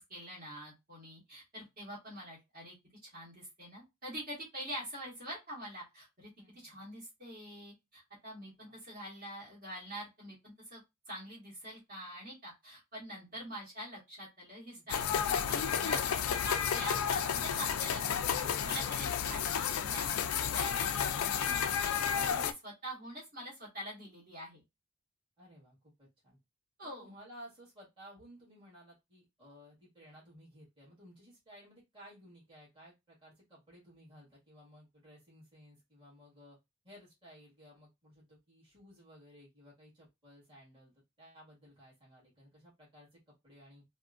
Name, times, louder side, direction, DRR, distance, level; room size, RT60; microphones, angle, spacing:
voice 1, 0.0-2.8 3.0-18.2 18.4-24.6 26.8-27.1, right 1 dB, 45° right, -7 dB, 1.7 m, -45 dB
voice 2, 6.4-6.8 8.6-8.8 13.3-13.4 14.7-14.8 21.8-22.0 25.4-26.4 26.8-36.6 36.8-43.8, equal, 25° right, -7 dB, 1.8 m, -57 dB
sound 1, 14.9-22.5, left 8 dB, 90° left, 0.4 m, -32 dB
3.4 x 2.2 x 2.5 m, 0.21 s
head